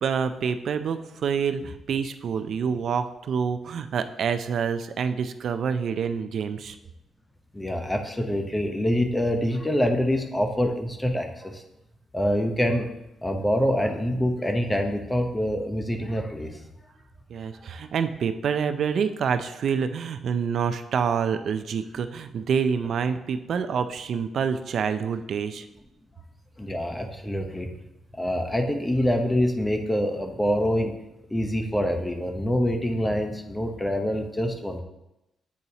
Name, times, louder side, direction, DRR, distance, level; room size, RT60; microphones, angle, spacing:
voice 1, 0.0-6.8 17.3-25.6, right 6 dB, 65° right, 9 dB, 0.4 m, -27 dB
voice 2, 7.5-11.6 12.1-12.9 13.2-16.6 26.6-27.7 28.1-30.9 31.3-34.8, equal, 15° left, 5 dB, 0.8 m, -25 dB
8.4 x 3.9 x 2.8 m, 0.90 s
cardioid pair, 80°, 0 cm